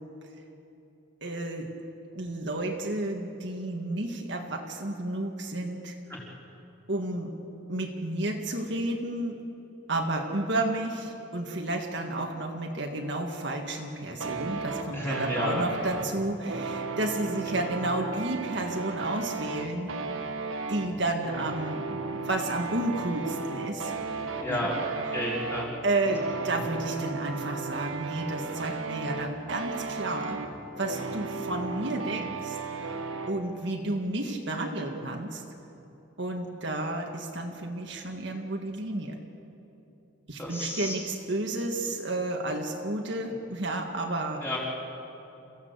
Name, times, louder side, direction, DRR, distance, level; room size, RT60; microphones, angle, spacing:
voice 1, 1.2-1.7 2.1-6.0 6.9-7.3 7.7-9.4 9.9-19.9 20.7-23.9 24.5-24.7 25.8-30.4 30.8-33.0 33.3-35.4 36.2-39.1 40.3-44.4, right 2 dB, 55° right, 2 dB, 1.9 m, -31 dB
sound 1, 14.2-33.4, right 4 dB, 75° right, 1.6 m, -35 dB
voice 2, 14.9-15.6 17.5-17.6 24.4-24.8 25.1-25.7 40.4-41.0 44.4-44.6, left 1 dB, 10° left, -5 dB, 4.4 m, -31 dB
28.5 x 15.5 x 8.2 m, 2.9 s
head